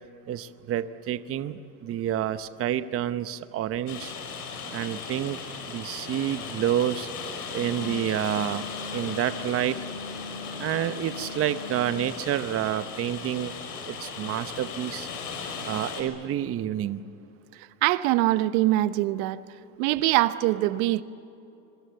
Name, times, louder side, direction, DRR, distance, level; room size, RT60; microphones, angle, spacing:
voice 1, 0.3-4.1 4.7-5.4 5.7-7.1 7.5-8.7 8.9-9.8 10.6-13.5 13.9-15.1 15.7-17.0, right 11 dB, 30° right, 12 dB, 0.9 m, -28 dB
Rain, 3.9-16.0, left 5 dB, 85° left, 5.8 m, -37 dB
Wind instrument woodwind instrument, 7.6-12.0, left 4 dB, 45° left, 3.4 m, -40 dB
voice 2, 17.8-19.4 19.8-21.0, right 16 dB, 60° right, 14 dB, 1.1 m, -23 dB
26.0 x 23.0 x 8.0 m, 2.8 s
hypercardioid pair, 110°, 45 cm